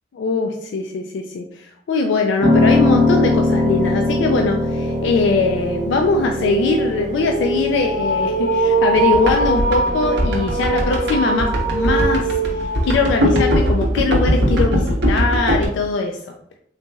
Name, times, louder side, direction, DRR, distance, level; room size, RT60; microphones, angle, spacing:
voice 1, 0.1-12.3 12.8-16.2, left 3 dB, 70° left, 3 dB, 0.3 m, -21 dB
Piano, 2.4-12.5, left 2 dB, 20° right, 1.0 m, -23 dB
sound 1, 3.3-3.4 3.8-14.6, right 2 dB, 40° right, 0.4 m, -24 dB
sound 2, 9.0-15.7, equal, 60° right, 0.8 m, -19 dB
4.0 x 2.9 x 2.3 m, 0.70 s
head